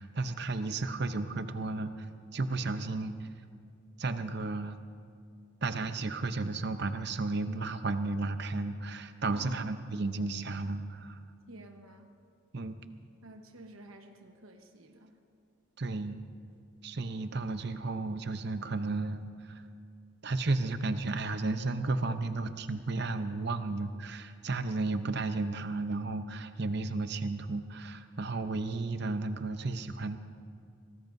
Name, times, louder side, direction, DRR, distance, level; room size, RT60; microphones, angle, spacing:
voice 1, 0.0-2.1 2.3-3.3 4.0-4.8 5.6-11.2 12.5-12.8 15.8-16.2 16.8-19.6 20.2-30.2, right 3 dB, 55° right, 9 dB, 0.7 m, -33 dB
voice 2, 9.3-9.7 11.5-12.1 13.2-15.2, right 1 dB, 85° right, 4 dB, 1.2 m, -51 dB
22.5 x 19.0 x 2.7 m, 2.4 s
head